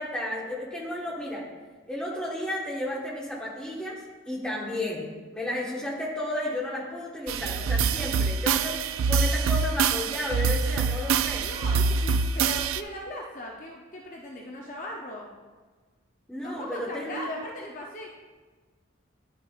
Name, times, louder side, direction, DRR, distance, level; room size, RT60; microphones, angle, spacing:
voice 1, 0.0-1.5 1.9-8.8 9.1-11.5 16.3-17.3, left 1 dB, 5° left, -5 dB, 1.3 m, -33 dB
sound 1, 7.3-12.8, right 5 dB, 80° right, 0.3 m, -25 dB
voice 2, 11.4-15.3 16.4-18.1, left 1 dB, 40° left, -1 dB, 0.6 m, -38 dB
10.5 x 6.3 x 2.4 m, 1.4 s
head